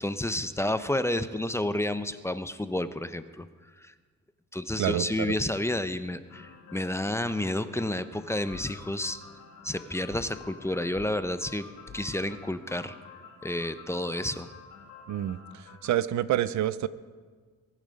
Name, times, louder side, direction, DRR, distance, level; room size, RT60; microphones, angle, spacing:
voice 1, 0.0-3.5 3.8-3.9 4.5-9.2 9.6-11.7 11.9-12.9 13.4-14.5, left 1 dB, 10° left, 11 dB, 0.7 m, -30 dB
voice 2, 4.8-5.3 15.1-16.9, right 12 dB, 70° right, 16 dB, 0.7 m, -28 dB
sound 1, 6.2-15.9, left 5 dB, 80° left, 2.7 m, -50 dB
sound 2, 8.5-8.8 10.1-10.4 10.9-11.2 11.9-12.2, left 7 dB, 40° left, 1.1 m, -48 dB
23.0 x 9.2 x 5.2 m, 1.5 s
cardioid pair, 90°, 30 cm